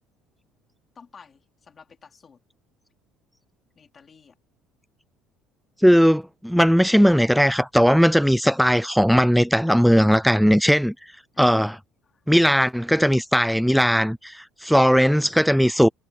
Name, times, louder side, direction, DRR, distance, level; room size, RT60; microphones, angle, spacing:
voice 1, 0.9-2.4 3.7-4.4 12.0-12.2, left 6 dB, 20° left, 3.4 m, -51 dB
voice 2, 5.8-10.9 11.4-11.8 12.3-15.9, equal, ahead, 0.4 m, -18 dB
cardioid pair, 175°, 0 cm